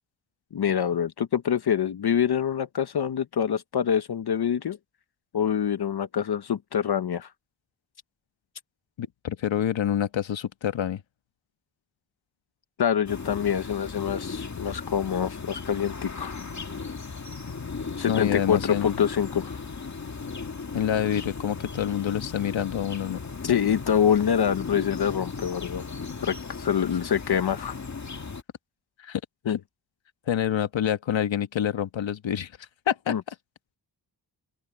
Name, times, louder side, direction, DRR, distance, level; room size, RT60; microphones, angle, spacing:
voice 1, 0.5-4.8 5.3-7.3 12.8-16.4 18.0-19.6 23.4-25.8 26.2-27.7 29.5-29.6 33.1-33.2, left 8 dB, 60° left, 0.9 m, -25 dB
voice 2, 9.0-11.0 18.1-18.9 20.7-23.2 29.0-29.2 29.5-29.6 30.3-33.3, left 9 dB, 85° left, 1.5 m, -27 dB
sound 1, 13.1-28.4, left 4 dB, 40° left, 2.3 m, -36 dB
open air
wide cardioid pair, 90°, 44 cm